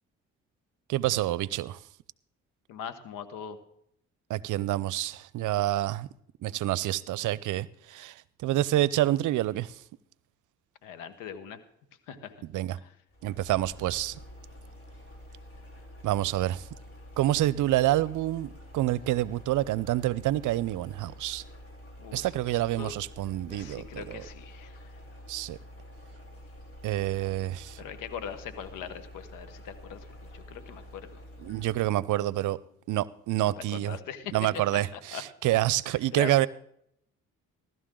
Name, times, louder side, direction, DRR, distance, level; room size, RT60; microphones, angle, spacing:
voice 1, 0.9-1.8 4.3-6.1 6.4-9.8 12.5-12.8 13.2-14.2 16.0-16.6 17.2-21.4 22.1-24.2 25.3-25.6 26.8-27.8 31.4-32.6 32.9-33.9 34.3-36.5, right 15 dB, 70° right, 0.6 m, -28 dB
voice 2, 2.7-3.6 10.8-11.6 12.1-12.4 12.8-12.9 22.0-22.9 23.5-25.0 27.8-31.2 33.4-34.3 34.7-35.2 35.9-36.3, left 8 dB, 90° left, 1.4 m, -41 dB
sound 1, 13.1-32.0, left 1 dB, 45° left, 4.2 m, -48 dB
16.5 x 12.5 x 3.8 m
supercardioid pair, 65°, 31 cm